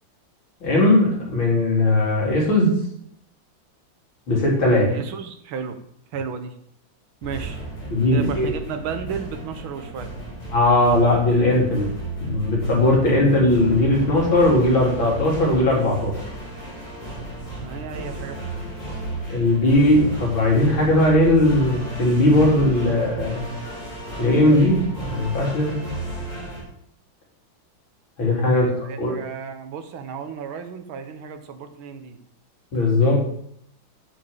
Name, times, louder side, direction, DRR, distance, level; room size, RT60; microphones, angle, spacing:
voice 1, 0.6-2.7 4.3-5.0 7.9-8.5 10.5-11.9 12.2-16.2 19.3-23.4 24.2-25.7 28.2-29.1 32.7-33.3, left 1 dB, 70° left, -2 dB, 4.1 m, -18 dB
voice 2, 4.7-5.8 6.1-6.5 7.2-7.6 8.1-10.1 17.6-19.0 28.5-32.2, right 6 dB, 80° right, 7 dB, 1.9 m, -34 dB
sound 1, 7.2-26.6, right 1 dB, 20° left, 4.2 m, -34 dB
8.2 x 7.5 x 7.3 m, 0.69 s
omnidirectional pair, 2.3 m